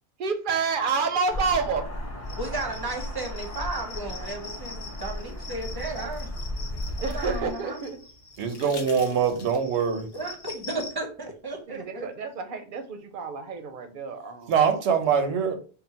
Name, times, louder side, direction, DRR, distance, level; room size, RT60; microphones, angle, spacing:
voice 1, 0.2-1.9 7.0-8.0 8.6-9.2 11.7-14.7, right 5 dB, 60° right, 0.7 m, -29 dB
sound 1, 1.3-7.5, left 1 dB, 15° left, 0.7 m, -35 dB
sound 2, 2.3-10.9, left 4 dB, 85° left, 1.2 m, -44 dB
voice 2, 2.4-6.3 7.0-7.8 10.1-12.1, right 2 dB, 25° right, 0.7 m, -34 dB
sound 3, 5.2-7.4 8.3-9.9 11.5-11.6, left 4 dB, 65° left, 1.0 m, -47 dB
voice 3, 8.4-10.1 14.5-15.6, right 6 dB, 90° right, 1.0 m, -23 dB
3.8 x 2.1 x 4.1 m
omnidirectional pair, 1.1 m